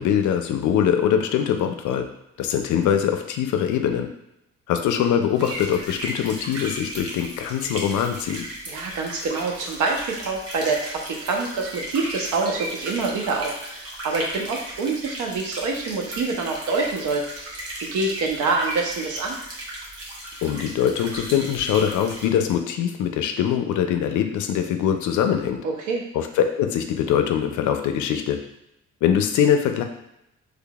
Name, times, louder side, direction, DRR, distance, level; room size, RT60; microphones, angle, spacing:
voice 1, 0.0-2.0 2.4-4.1 4.7-8.4 20.4-25.6 26.1-28.4 29.0-29.8, left 9 dB, 75° left, 6 dB, 0.4 m, -22 dB
sound 1, 5.4-22.3, right 1 dB, 55° right, 1.1 m, -36 dB
voice 2, 8.7-19.4 25.6-26.0, right 3 dB, 85° right, 1 dB, 0.8 m, -26 dB
3.8 x 3.3 x 2.3 m, 0.85 s
cardioid pair, 90°, 30 cm